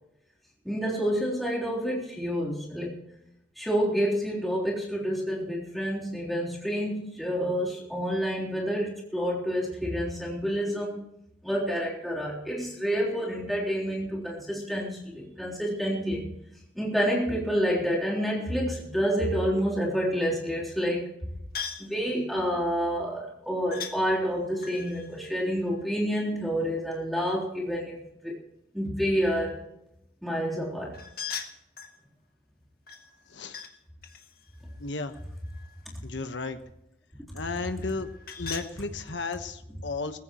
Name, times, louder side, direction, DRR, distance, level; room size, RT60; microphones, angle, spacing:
voice 1, 0.7-2.9 3.6-11.0 11.4-16.2 16.8-21.1 21.8-28.3 28.7-29.6 30.2-31.0, equal, ahead, -5 dB, 3.6 m, -28 dB
sound 1, 21.5-21.9 23.7-24.0 24.6-26.4 30.9-32.0 32.9-33.7 34.0-35.9 37.8-38.7, left 7 dB, 55° left, 1.6 m, -40 dB
voice 2, 34.8-35.2 36.0-36.6 37.3-38.1 38.4-40.2, left 3 dB, 85° left, 8 dB, 1.3 m, -34 dB
19.0 x 16.0 x 3.1 m, 0.81 s
head